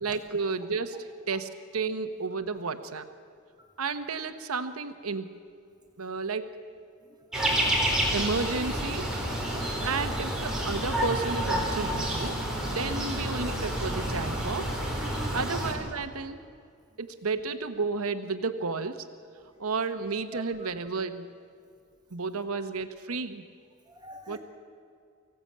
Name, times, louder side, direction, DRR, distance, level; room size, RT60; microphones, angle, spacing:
voice 1, 0.0-3.1 3.8-5.3 6.0-6.6 8.1-9.1 9.8-14.8 15.3-16.4 17.0-19.1 19.6-21.3 22.1-23.4 24.3-24.4, right 4 dB, 85° right, 9 dB, 1.1 m, -32 dB
sound 1, 7.3-15.7, equal, 5° right, 4.4 m, -29 dB
voice 2, 7.4-7.7 8.1-8.2 9.7-9.9 12.8-13.0 15.0-15.5 20.3-20.7 23.9-24.4, right 2 dB, 20° right, 3 dB, 1.9 m, -45 dB
24.0 x 16.0 x 8.7 m, 2.3 s
head